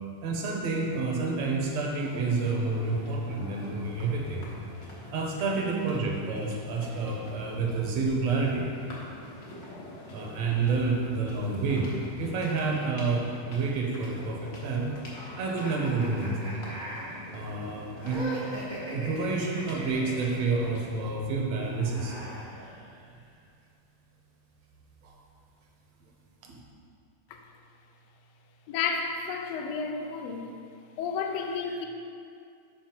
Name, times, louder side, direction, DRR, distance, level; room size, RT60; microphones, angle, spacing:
voice 1, 0.2-4.5 5.1-8.7 10.1-11.9 12.2-14.9 15.4-16.4 17.3-18.3 18.9-22.2 25.0-25.2 26.4-26.6, right 3 dB, 70° right, 0 dB, 2.0 m, -29 dB
sound 1, 2.0-20.9, left 1 dB, 55° left, 1.0 m, -46 dB
sound 2, 15.6-20.3 21.5-23.2, equal, 40° right, 0.7 m, -40 dB
voice 2, 28.7-30.5 31.0-31.9, left 5 dB, 75° left, 3 dB, 1.6 m, -31 dB
7.5 x 5.7 x 4.4 m, 2.4 s
omnidirectional pair, 3.4 m